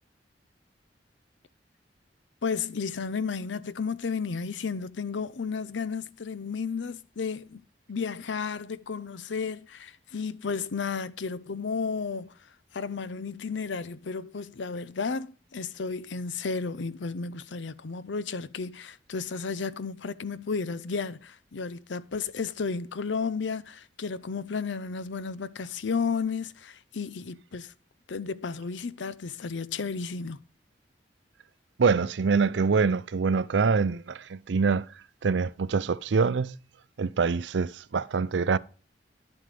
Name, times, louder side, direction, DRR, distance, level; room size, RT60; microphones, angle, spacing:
voice 1, 2.4-7.6 7.9-12.3 12.7-27.7 28.1-30.4, left 5 dB, 80° left, 0.6 m, -33 dB
voice 2, 31.8-34.9 35.2-36.6 37.0-38.6, right 5 dB, 75° right, 0.5 m, -25 dB
11.0 x 7.6 x 3.3 m
head